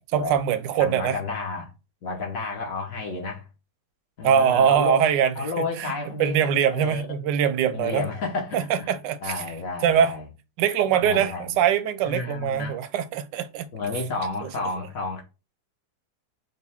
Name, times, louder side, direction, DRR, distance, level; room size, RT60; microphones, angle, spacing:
voice 1, 0.1-1.2 4.2-5.5 5.8-5.9 6.2-8.0 8.5-9.4 9.8-10.1 10.6-13.7 14.4-14.5, right 8 dB, 90° right, 1.2 m, -22 dB
voice 2, 0.8-1.7 2.0-3.5 4.2-5.0 5.4-7.0 7.7-8.9 9.2-10.3 11.0-11.6 12.0-12.8 13.7-15.2, left 3 dB, 55° left, 1.4 m, -31 dB
5.4 x 2.3 x 3.4 m
omnidirectional pair, 1.9 m